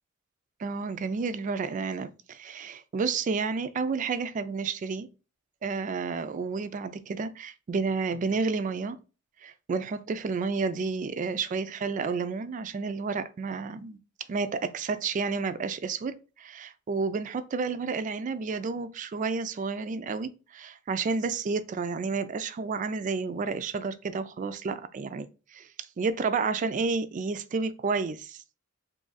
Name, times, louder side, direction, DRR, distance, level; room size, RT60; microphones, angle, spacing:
voice 1, 0.6-5.1 5.6-9.0 9.4-14.0 14.3-25.7 26.0-28.4, right 4 dB, 40° right, 0.3 m, -31 dB
2.7 x 2.5 x 3.9 m
head